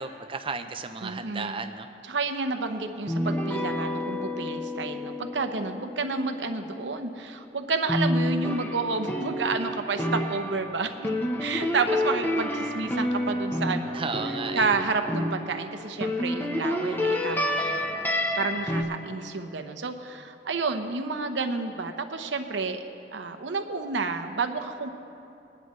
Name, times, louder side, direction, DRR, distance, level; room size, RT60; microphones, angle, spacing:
voice 1, 0.0-1.9 13.9-14.7, right 4 dB, 30° right, 8 dB, 0.5 m, -34 dB
voice 2, 1.0-1.6 2.1-11.1 11.4-14.0 14.5-24.9, right 4 dB, 75° right, 7 dB, 0.8 m, -30 dB
sound 1, 3.1-7.4 7.9-15.6 16.0-18.8, left 1 dB, 10° left, 0.9 m, -29 dB
21.0 x 10.0 x 3.2 m, 2.7 s
head